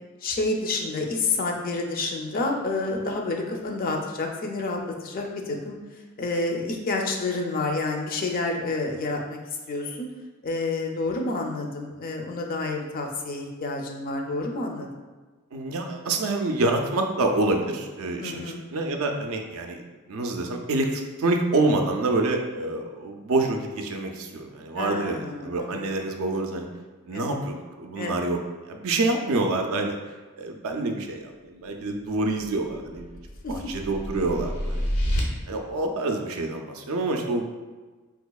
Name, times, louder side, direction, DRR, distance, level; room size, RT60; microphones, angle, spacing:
voice 1, 0.2-5.8 6.2-9.4 9.7-10.1 10.4-14.9 18.2-18.6 24.8-25.9 27.1-27.4 28.0-28.2 33.4-33.5, left 3 dB, 40° left, 2 dB, 0.4 m, -29 dB
voice 2, 15.5-19.8 20.1-26.7 27.1-28.4 28.6-30.0 30.4-33.1 33.5-35.0 35.5-37.4, right 2 dB, 70° right, 4 dB, 0.4 m, -27 dB
sound 1, 32.4-35.2, equal, 90° left, 0.7 m, -29 dB
3.8 x 2.8 x 2.3 m, 1.3 s
head